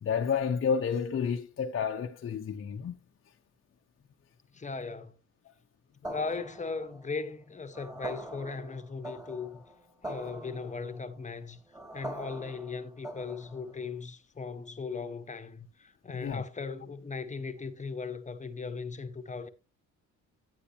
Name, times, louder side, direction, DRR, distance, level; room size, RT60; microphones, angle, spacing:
voice 1, 0.0-3.0 16.1-16.4, left 6 dB, 45° left, 0.9 m, -30 dB
voice 2, 4.5-5.1 6.0-9.6 10.0-11.6 11.9-19.5, left 4 dB, 25° left, 1.2 m, -38 dB
sound 1, 6.0-13.8, right 1 dB, 15° right, 3.4 m, -43 dB
9.8 x 9.3 x 2.9 m
cardioid pair, 90°, 30 cm